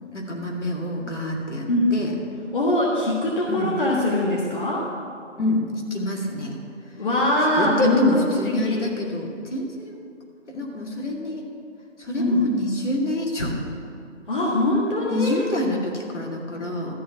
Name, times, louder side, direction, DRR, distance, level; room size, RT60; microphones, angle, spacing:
voice 1, 0.1-1.7 1.9-2.1 3.5-3.7 5.4-5.6 5.9-6.6 7.6-10.0 10.5-11.4 12.0-13.5 15.1-16.9, left 1 dB, 70° left, -1 dB, 2.2 m, -27 dB
voice 2, 2.5-4.9 7.0-8.8 12.1-12.5 14.3-15.5, left 1 dB, 40° left, -4 dB, 1.5 m, -22 dB
13.0 x 4.7 x 8.5 m, 2.4 s
figure-of-eight pair, 160°, 37 cm